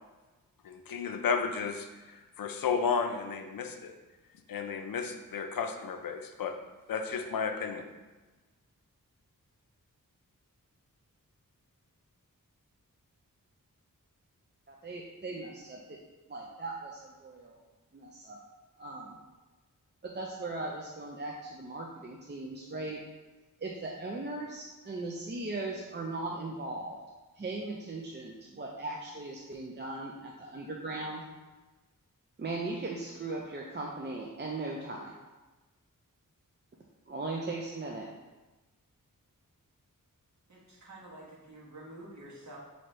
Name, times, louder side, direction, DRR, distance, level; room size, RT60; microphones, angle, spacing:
voice 1, 0.6-3.9 4.5-6.5 6.9-7.9, left 6 dB, 80° left, 6 dB, 0.5 m, -33 dB
voice 2, 14.7-16.0 16.3-17.6 17.9-18.4 18.8-19.2 20.0-23.0 23.6-27.0 27.4-31.2 32.4-35.1 37.1-38.1, right 2 dB, 30° right, -2 dB, 0.5 m, -38 dB
voice 3, 40.5-42.6, right 1 dB, 55° right, -4 dB, 1.2 m, -49 dB
5.8 x 2.8 x 3.1 m, 1.2 s
wide cardioid pair, 75°, 34 cm